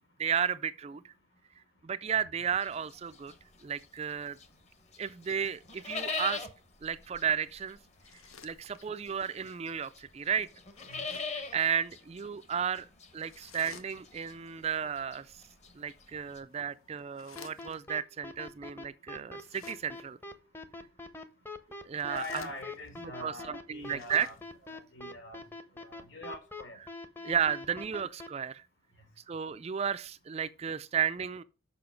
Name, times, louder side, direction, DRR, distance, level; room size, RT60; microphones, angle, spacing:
voice 1, 0.2-1.1 1.8-3.3 3.6-4.4 5.0-6.5 6.8-7.8 8.4-10.5 11.3-12.9 13.1-15.4 15.8-20.2 21.9-22.2 23.0-24.3 27.2-28.6 29.3-31.4, right 7 dB, 30° right, 0.3 m, -33 dB
sound 1, 2.6-4.6 4.9-16.4, left 4 dB, 35° left, 1.1 m, -42 dB
sound 2, 7.9-9.1 10.6-11.5 13.2-14.3 16.1-18.0 19.3-20.2 21.8-23.0 23.7-24.8, left 7 dB, 85° left, 0.9 m, -55 dB
sound 3, 17.4-28.3, left 2 dB, 10° left, 0.7 m, -43 dB
voice 2, 22.0-24.4 24.6-25.4 25.7-26.8, left 2 dB, 60° left, 2.4 m, -43 dB
6.9 x 5.7 x 5.1 m
head